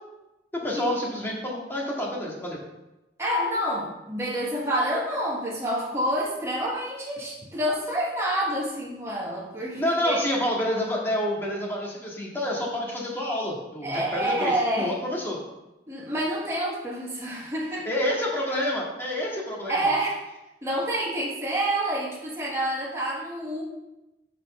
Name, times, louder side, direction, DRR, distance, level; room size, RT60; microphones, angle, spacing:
voice 1, 0.5-2.6 9.7-15.4 17.8-19.8, left 1 dB, 15° left, -4 dB, 1.9 m, -28 dB
voice 2, 3.2-10.3 13.8-14.9 15.9-17.9 19.7-20.2 20.6-23.6, right 1 dB, 15° right, -5 dB, 1.5 m, -28 dB
6.4 x 5.7 x 5.5 m, 0.97 s
head